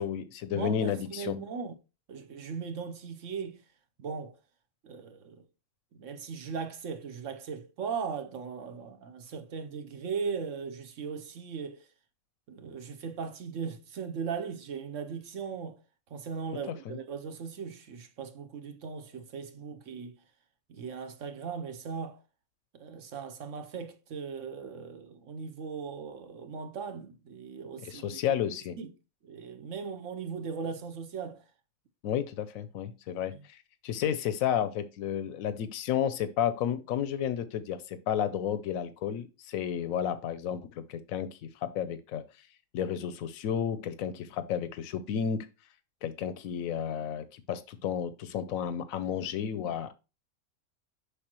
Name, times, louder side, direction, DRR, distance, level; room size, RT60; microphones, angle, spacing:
voice 1, 0.0-1.4 16.9-17.0 27.8-28.8 32.0-42.2 42.7-45.5 46.0-49.9, left 9 dB, 90° left, 1.0 m, -32 dB
voice 2, 0.5-1.7 2.1-3.6 4.0-4.4 4.8-5.4 5.9-11.9 12.5-15.8 16.1-20.2 20.7-22.2 22.7-28.2 28.8-28.9 29.2-31.4 33.3-33.4, right 6 dB, 70° right, 1.2 m, -38 dB
6.7 x 5.5 x 3.0 m
omnidirectional pair, 1.4 m